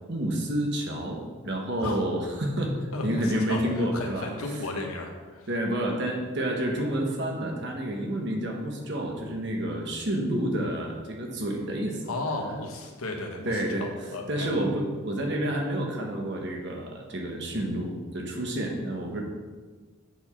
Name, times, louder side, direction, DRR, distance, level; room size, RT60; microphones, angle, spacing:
voice 1, 0.1-4.3 5.5-12.0 13.4-13.9 14.3-19.2, right 1 dB, 55° right, 1 dB, 1.4 m, -29 dB
voice 2, 2.9-5.5 12.1-14.5, left 2 dB, 90° left, 2 dB, 1.3 m, -34 dB
7.9 x 4.6 x 5.8 m, 1.4 s
head